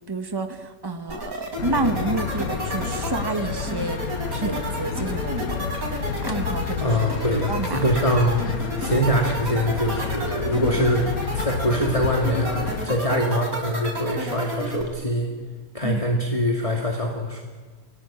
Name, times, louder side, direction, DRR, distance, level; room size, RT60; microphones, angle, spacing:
voice 1, 0.1-5.7 6.3-7.0 7.5-7.8 15.8-16.0, right 2 dB, 15° right, 6 dB, 1.7 m, -29 dB
sound 1, 1.1-14.8, right 1 dB, 55° right, 5.4 m, -31 dB
sound 2, 1.6-12.9, left 6 dB, 60° left, 1.8 m, -30 dB
voice 2, 6.8-8.4 8.8-11.0 11.3-15.3 15.7-17.4, equal, 20° left, 0 dB, 2.6 m, -23 dB
29.0 x 20.5 x 8.8 m, 1.4 s
omnidirectional pair, 1.8 m